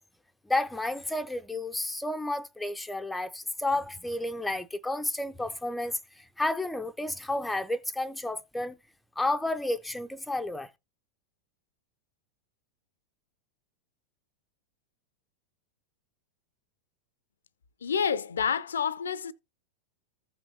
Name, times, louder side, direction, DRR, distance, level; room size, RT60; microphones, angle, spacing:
voice 1, 0.5-8.8 9.2-10.7, left 2 dB, 5° left, 0.5 m, -31 dB
voice 2, 17.8-19.3, left 7 dB, 70° left, 0.5 m, -28 dB
15.0 x 5.8 x 2.6 m
figure-of-eight pair, 90°, 0 cm